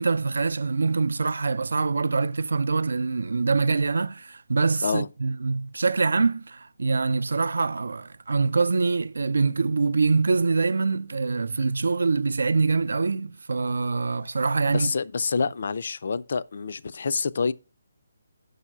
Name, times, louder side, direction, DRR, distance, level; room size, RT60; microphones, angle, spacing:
voice 1, 0.0-14.9, right 4 dB, 80° right, 0.4 m, -24 dB
voice 2, 14.7-17.5, left 5 dB, 45° left, 0.4 m, -27 dB
6.3 x 5.5 x 6.0 m
hypercardioid pair, 175°, 0 cm